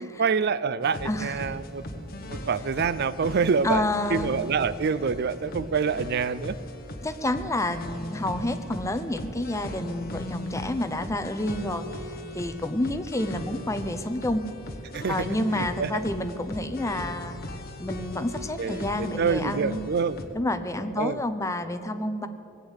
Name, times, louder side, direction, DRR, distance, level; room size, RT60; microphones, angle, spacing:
voice 1, 0.0-3.8 4.1-6.6 14.9-15.2 15.5-15.9 18.6-20.2 21.0-21.2, right 5 dB, 50° right, 16 dB, 0.4 m, -26 dB
sound 1, 0.8-20.2, left 1 dB, 45° left, 1.2 m, -38 dB
voice 2, 1.0-1.5 3.6-4.3 7.0-14.4 15.1-17.5 17.8-19.8 20.3-22.3, left 1 dB, 15° left, 9 dB, 0.7 m, -29 dB
19.0 x 8.3 x 8.1 m, 2.8 s
head